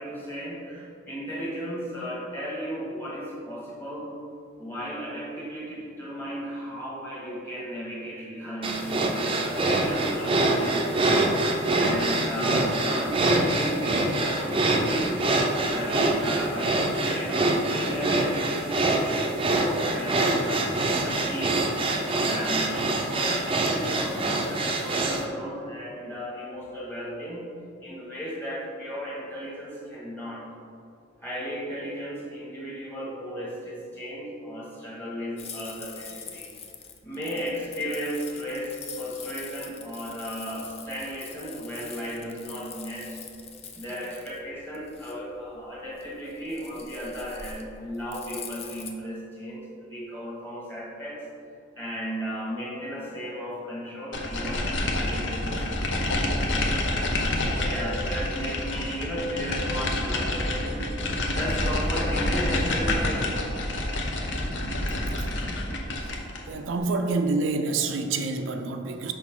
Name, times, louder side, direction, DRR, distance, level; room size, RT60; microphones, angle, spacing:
voice 1, 0.0-4.1 4.6-11.3 11.7-15.2 15.7-21.7 22.1-27.5 27.8-30.5 31.2-36.5 37.0-43.2 43.7-51.2 51.7-60.9 61.3-63.4, equal, 10° left, -6 dB, 1.5 m, -35 dB
sound 1, 8.6-25.2, right 2 dB, 25° right, 0.5 m, -25 dB
sound 2, 35.4-48.9, left 6 dB, 30° left, 0.5 m, -43 dB
sound 3, 54.1-66.5, left 1 dB, 65° left, 0.8 m, -28 dB
voice 2, 66.5-69.1, right 3 dB, 80° right, 5 dB, 0.4 m, -27 dB
6.1 x 5.4 x 3.7 m, 2.5 s
head